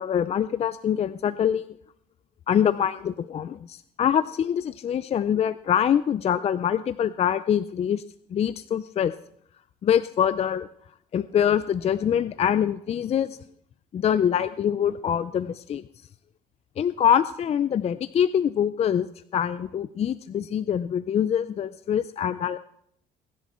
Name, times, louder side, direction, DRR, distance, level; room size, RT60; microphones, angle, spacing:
voice 1, 0.0-1.7 2.5-8.0 8.3-9.1 9.8-10.7 11.1-13.4 13.9-15.8 16.8-22.6, left 9 dB, 40° left, 15 dB, 0.5 m, -24 dB
22.0 x 10.5 x 4.4 m, 0.69 s
cardioid pair, 110°, 17 cm